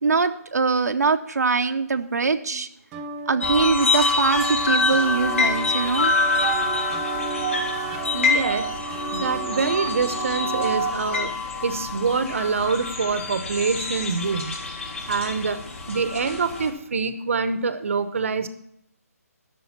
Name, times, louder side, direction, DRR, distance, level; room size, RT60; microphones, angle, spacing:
voice 1, 0.0-2.7 3.3-6.1 6.5-6.8, right 4 dB, 80° right, 5 dB, 0.8 m, -23 dB
sound 1, 2.9-10.9, right 7 dB, 10° right, 0.5 m, -31 dB
sound 2, 3.4-16.7, left 4 dB, 50° left, 3.8 m, -26 dB
voice 2, 8.1-8.7 9.1-11.3 11.6-14.6 15.1-15.6 15.9-18.5, right 5 dB, 55° right, 11 dB, 0.9 m, -25 dB
12.5 x 6.4 x 5.7 m, 0.74 s
hypercardioid pair, 165°, 9 cm